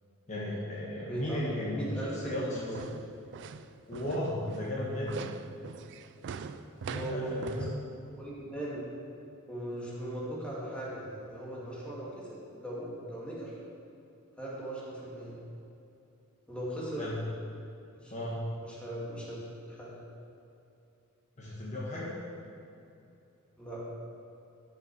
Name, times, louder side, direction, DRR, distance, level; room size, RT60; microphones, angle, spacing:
voice 1, 0.3-1.9 2.1-2.9 3.9-5.4 6.9-7.7 17.0-17.2 18.1-18.4 21.4-22.1, left 1 dB, 35° left, -6 dB, 1.4 m, -35 dB
voice 2, 1.0-2.8 6.9-7.7 8.1-8.8 9.5-13.5 14.4-15.4 16.5-17.0 18.0-18.3 18.6-19.4 19.7-19.9 23.6-23.8, right 1 dB, 5° left, -7 dB, 2.1 m, -38 dB
sound 1, 2.2-7.8, right 6 dB, 55° right, 0.4 m, -42 dB
13.0 x 5.8 x 4.8 m, 2.8 s
head